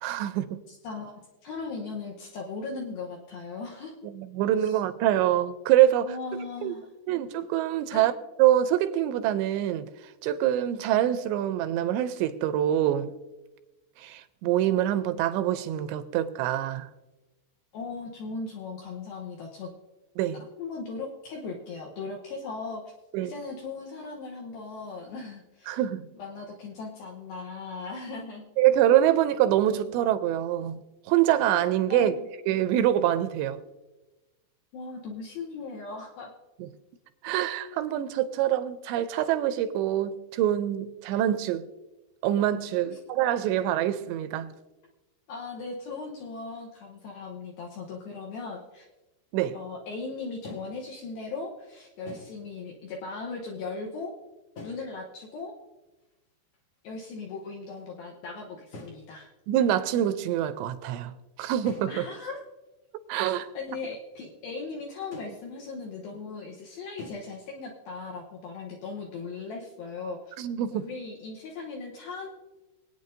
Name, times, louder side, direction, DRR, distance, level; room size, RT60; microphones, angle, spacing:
voice 1, 0.0-0.6 4.1-6.2 6.6-6.7 7.1-8.1 8.4-9.9 10.2-13.1 14.0-16.9 20.2-20.4 23.1-23.3 25.7-26.1 28.6-30.8 31.1-32.2 32.5-33.6 37.2-41.7 42.2-44.5 49.3-49.6 59.5-62.0 63.1-63.5 70.4-70.9, right 12 dB, 85° right, 2.7 m, -25 dB
voice 2, 0.7-4.1 4.6-4.8 6.0-6.9 7.9-8.1 17.7-19.7 20.6-22.8 23.2-25.8 26.1-28.5 31.9-32.2 34.7-36.3 42.8-43.0 45.3-48.9 49.5-54.1 54.6-55.6 56.8-59.3 61.9-62.4 63.5-70.3 70.7-72.3, left 4 dB, 70° left, 2.4 m, -38 dB
sound 1, 47.8-47.9 48.3-48.6 50.4-50.9 52.1-52.4 54.6-54.9 56.0-56.2 56.5-56.9 57.2-57.4 57.7-58.1 58.7-59.1 61.6-62.1 62.4-62.5 63.1-63.2 65.1-65.4 67.0-67.1, left 2 dB, 55° left, 1.7 m, -45 dB
25.0 x 9.0 x 2.6 m
omnidirectional pair, 5.3 m